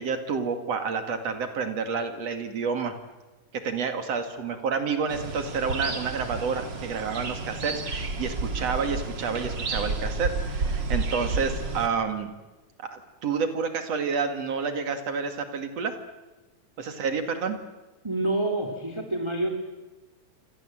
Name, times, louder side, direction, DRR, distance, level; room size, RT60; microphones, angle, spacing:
voice 1, 0.0-2.9 3.6-12.3 12.8-16.0 16.8-17.6, right 5 dB, 60° right, 7 dB, 3.3 m, -29 dB
sound 1, 5.1-11.9, right 3 dB, 40° right, 2.8 m, -31 dB
voice 2, 18.0-19.5, right 2 dB, 10° right, 3 dB, 2.7 m, -27 dB
29.0 x 26.5 x 7.8 m, 1.1 s
omnidirectional pair, 3.3 m